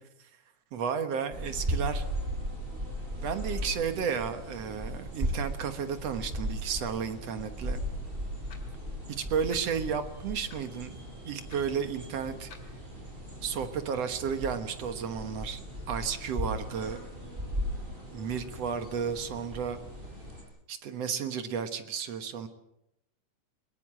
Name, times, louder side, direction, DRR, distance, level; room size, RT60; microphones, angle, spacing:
voice 1, 0.7-2.0 3.2-7.8 9.2-11.0 11.3-12.5 13.4-17.0 18.1-19.8 20.7-22.5, right 7 dB, 60° right, 9 dB, 2.2 m, -33 dB
sound 1, 1.3-20.4, equal, 15° right, 6.6 m, -37 dB
sound 2, 8.5-8.8 9.5-9.6 10.5-10.7 11.5-11.6 12.5-12.7, left 6 dB, 45° left, 3.0 m, -51 dB
22.0 x 21.0 x 7.5 m, 0.84 s
omnidirectional pair, 3.5 m